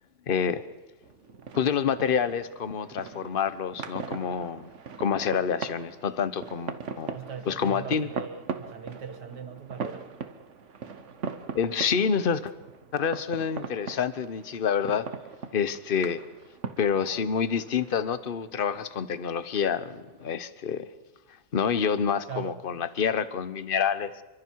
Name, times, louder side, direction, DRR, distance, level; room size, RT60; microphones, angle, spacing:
voice 1, 0.3-0.6 1.5-4.7 5.0-7.1 7.5-8.1 11.5-12.5 12.9-15.1 15.5-16.2 16.8-20.9 21.5-24.2, left 7 dB, 40° left, 14 dB, 0.9 m, -27 dB
sound 1, 1.0-20.3, right 5 dB, 45° right, 1.3 m, -41 dB
voice 2, 7.1-10.1 22.3-22.6, right 7 dB, 65° right, 8 dB, 2.3 m, -39 dB
29.0 x 24.5 x 4.7 m, 1.1 s
omnidirectional pair, 2.0 m